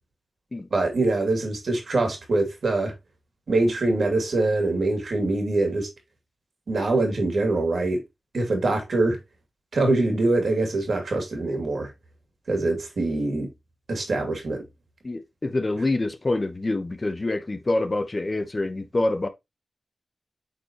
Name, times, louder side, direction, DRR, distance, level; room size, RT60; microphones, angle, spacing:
voice 1, 0.7-2.9 3.5-5.9 6.7-8.0 8.3-9.2 9.7-11.9 12.5-13.5 13.9-14.7, right 2 dB, 75° right, 2.6 m, -24 dB
voice 2, 15.0-19.3, left 2 dB, 35° left, 0.9 m, -26 dB
8.5 x 4.4 x 3.0 m
wide cardioid pair, 85°, 0 cm